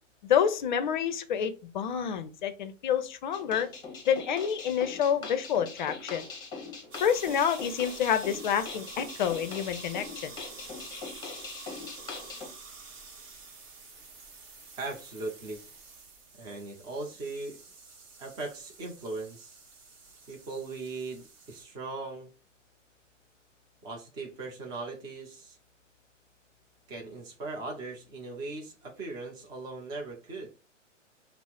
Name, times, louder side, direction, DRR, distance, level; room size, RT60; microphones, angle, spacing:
voice 1, 0.2-3.7 4.1-6.3 7.0-10.3, left 8 dB, 40° left, 0.6 m, -28 dB
sound 1, 3.3-12.5, left 4 dB, 10° left, 0.9 m, -42 dB
sound 2, 6.9-21.6, right 4 dB, 35° right, 1.2 m, -48 dB
voice 2, 14.8-15.6 16.4-17.6 18.2-19.6 20.3-22.3 23.8-25.6 26.9-30.5, right 3 dB, 10° right, 0.6 m, -39 dB
5.5 x 2.0 x 4.5 m
figure-of-eight pair, 115°, 38 cm